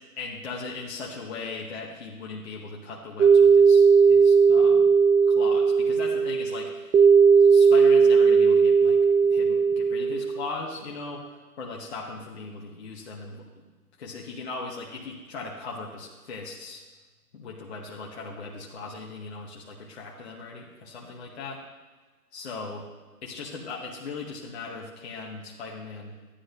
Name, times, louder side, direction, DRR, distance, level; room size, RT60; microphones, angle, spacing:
voice 1, 0.2-4.9 5.3-7.0 7.3-13.6 14.0-16.8 17.3-21.6 22.3-22.9 23.2-26.2, left 3 dB, 40° left, -2 dB, 1.0 m, -38 dB
sound 1, 3.2-10.5, right 5 dB, 85° right, 0.8 m, -18 dB
12.5 x 9.9 x 2.6 m, 1.3 s
hypercardioid pair, 150°, 48 cm